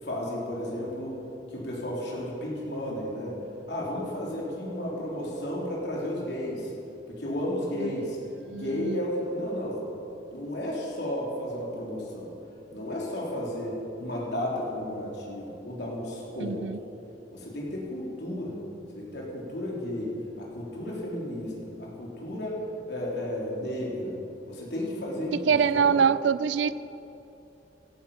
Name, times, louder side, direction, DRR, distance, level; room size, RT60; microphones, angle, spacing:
voice 1, 0.0-1.2 1.5-3.4 3.7-6.7 7.1-8.2 8.5-9.8 10.3-12.3 12.7-16.7 17.3-18.6 18.9-22.6 22.9-24.2 24.5-26.0, left 1 dB, 65° left, -4 dB, 3.7 m, -33 dB
voice 2, 8.5-9.0 16.4-16.8 25.5-26.7, right 6 dB, 80° right, 16 dB, 0.4 m, -24 dB
16.0 x 12.0 x 5.7 m, 2.9 s
head